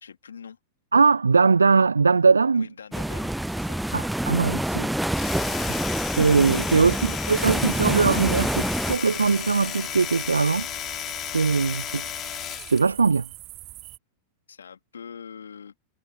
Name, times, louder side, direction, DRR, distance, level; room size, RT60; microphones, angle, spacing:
voice 1, 0.0-0.6 2.5-3.8 14.5-15.7, left 7 dB, 70° left, 2.9 m, -43 dB
voice 2, 0.9-2.7 3.9-4.9 6.2-10.7 11.2-12.0 12.7-13.3, right 4 dB, 75° right, 0.8 m, -21 dB
sound 1, 2.9-9.0, right 1 dB, 5° right, 0.5 m, -27 dB
Domestic sounds home sounds, 5.0-12.9, left 12 dB, 30° left, 3.4 m, -34 dB
sound 2, 7.5-14.0, right 18 dB, 40° right, 1.1 m, -42 dB
figure-of-eight pair, 90°, 0 cm